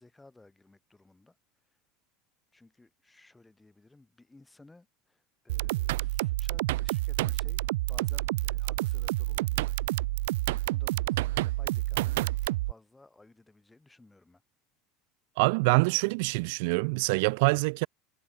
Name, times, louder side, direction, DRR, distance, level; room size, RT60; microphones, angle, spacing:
voice 1, 0.0-1.4 1.7-1.8 2.5-9.7 10.6-14.4, left 2 dB, 10° left, 7.0 m, -57 dB
sound 1, 5.5-12.7, right 18 dB, 85° right, 1.3 m, -29 dB
voice 2, 15.4-17.9, right 29 dB, 70° right, 0.3 m, -25 dB
supercardioid pair, 145°, 0 cm